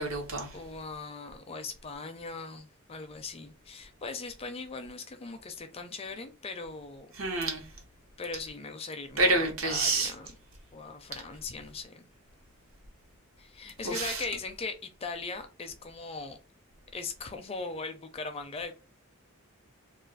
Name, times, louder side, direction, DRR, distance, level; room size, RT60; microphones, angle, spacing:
voice 1, 0.0-0.6 7.2-7.6 9.2-10.1 13.8-14.2, right 2 dB, 75° right, 1.0 m, -28 dB
voice 2, 0.5-7.1 8.2-10.4 10.7-12.1 13.4-16.4 16.9-18.7, left 4 dB, 30° left, 0.4 m, -40 dB
2.4 x 2.4 x 3.9 m
head